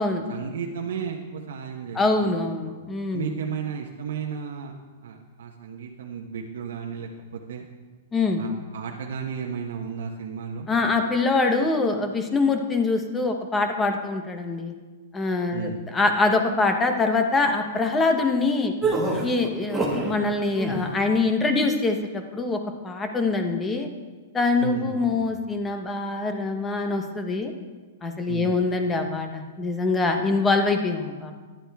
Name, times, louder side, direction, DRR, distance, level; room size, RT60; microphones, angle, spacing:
voice 1, 0.3-2.4 3.1-4.7 5.0-7.7 8.4-10.7 15.5-15.8 24.6-25.3 28.3-28.6, right 6 dB, 75° right, 0 dB, 1.1 m, -33 dB
voice 2, 1.9-3.4 8.1-8.4 10.7-14.7 15.1-18.7 19.2-23.9 24.3-27.5 28.0-31.3, left 3 dB, 10° left, 5 dB, 0.9 m, -24 dB
sound 1, 18.8-20.1 20.5-21.0, right 2 dB, 5° right, 1.6 m, -26 dB
13.5 x 10.5 x 3.5 m, 1.4 s
hypercardioid pair, 160°, 0 cm